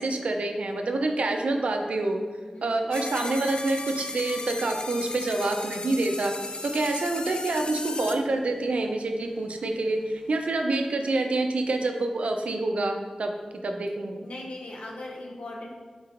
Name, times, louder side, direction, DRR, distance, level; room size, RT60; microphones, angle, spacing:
voice 1, 0.0-2.2 2.6-6.3 6.6-13.3 13.6-14.2, right 2 dB, 75° right, 4 dB, 0.4 m, -27 dB
voice 2, 2.5-2.9 14.2-15.7, left 1 dB, 75° left, -2 dB, 0.8 m, -39 dB
sound 1, 2.9-8.1, left 2 dB, 50° left, 0.3 m, -36 dB
4.3 x 3.7 x 2.5 m, 1.5 s
cardioid pair, 45°, 2 cm